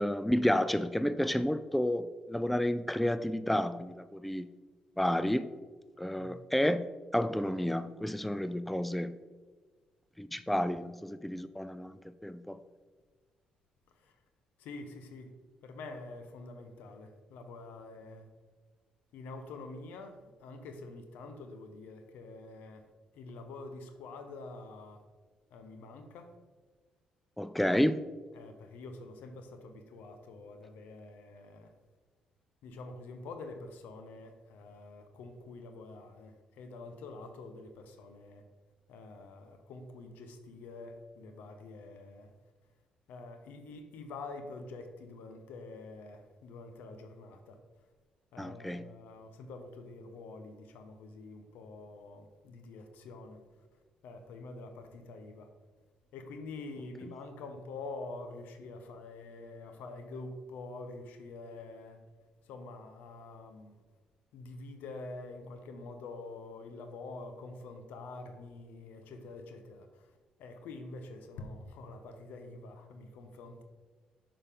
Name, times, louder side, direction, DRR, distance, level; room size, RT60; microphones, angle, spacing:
voice 1, 0.0-4.5 5.0-5.5 6.0-6.9 7.1-9.2 10.2-12.6 27.4-28.0 48.4-48.8, left 1 dB, 5° left, 0.3 m, -30 dB
voice 2, 14.6-15.3 15.6-18.3 19.1-22.8 23.1-25.0 25.5-26.3 28.3-31.7 32.6-38.4 38.9-42.3 43.1-47.6 48.3-53.4 54.0-55.5 56.1-62.0 62.5-63.8 64.3-70.1 70.4-73.6, left 3 dB, 80° left, 0.8 m, -46 dB
6.6 x 5.5 x 3.5 m
supercardioid pair, 60°, 3 cm